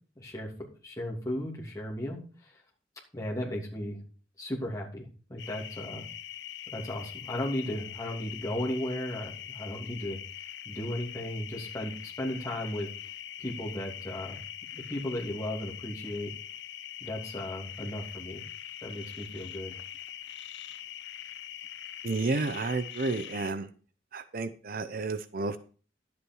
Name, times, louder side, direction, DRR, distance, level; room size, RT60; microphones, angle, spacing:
voice 1, 0.2-0.5 0.8-2.5 3.1-4.0 4.4-6.1 6.7-10.2 10.6-12.9 13.4-14.4 14.7-16.3 17.0-18.4 18.8-19.7, left 1 dB, 20° left, -3 dB, 2.9 m, -35 dB
sound 1, 5.4-23.5, left 10 dB, 60° left, 0.6 m, -43 dB
voice 2, 22.0-23.7 24.1-25.6, right 3 dB, 50° right, 12 dB, 0.6 m, -31 dB
11.5 x 8.4 x 4.6 m, 0.39 s
head